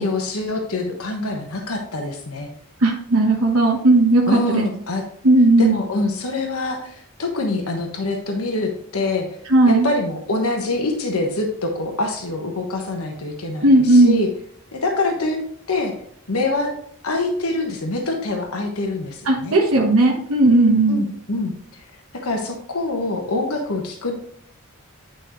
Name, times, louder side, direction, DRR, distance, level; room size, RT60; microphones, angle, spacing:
voice 1, 0.0-2.5 4.3-5.0 5.6-9.3 9.7-14.3 14.7-15.4 15.7-15.9 16.3-16.7 17.0-19.6 20.9-21.5 22.1-24.1, left 2 dB, 85° left, 3 dB, 1.2 m, -25 dB
voice 2, 2.8-4.7 5.2-5.8 9.5-9.9 13.6-14.2 19.2-21.0, right 2 dB, 75° right, -1 dB, 1.2 m, -15 dB
9.1 x 5.4 x 3.1 m, 0.62 s
head